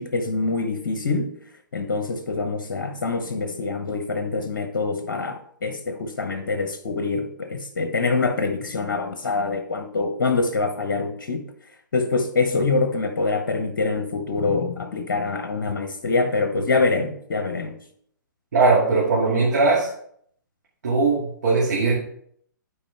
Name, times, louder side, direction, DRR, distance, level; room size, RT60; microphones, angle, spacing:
voice 1, 0.0-1.3 1.7-11.4 11.9-17.8, left 3 dB, 55° left, 0.9 m, -25 dB
voice 2, 18.5-19.9 20.8-21.9, right 3 dB, 60° right, 2.2 m, -19 dB
11.5 x 4.7 x 3.3 m
figure-of-eight pair, 125°, 11 cm